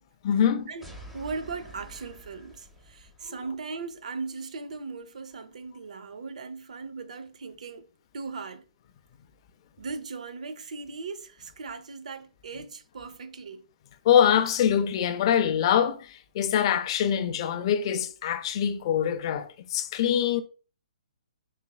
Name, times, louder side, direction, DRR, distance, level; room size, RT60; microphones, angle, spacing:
voice 1, 0.2-0.7 3.3-3.4 14.0-20.4, left 9 dB, 45° left, 0.4 m, -24 dB
sound 1, 0.8-3.4, right 1 dB, 5° right, 0.6 m, -47 dB
voice 2, 1.1-7.9 8.1-8.6 9.8-13.6, right 4 dB, 70° right, 0.5 m, -38 dB
4.0 x 3.0 x 2.2 m
hypercardioid pair, 140°, 4 cm